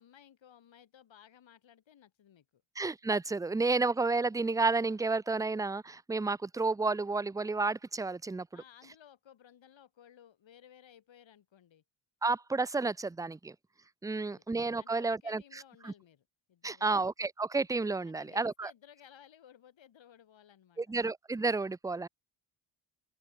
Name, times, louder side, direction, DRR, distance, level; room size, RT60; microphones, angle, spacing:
voice 1, 0.0-2.6 8.5-11.8 14.1-14.4 14.8-17.0 18.0-21.0, left 9 dB, 65° left, 6.3 m, -58 dB
voice 2, 2.8-8.5 12.2-13.6 14.0-15.4 15.8-15.9 16.6-18.7 20.8-22.1, right 3 dB, 10° right, 0.3 m, -31 dB
open air
cardioid pair, 75°, 49 cm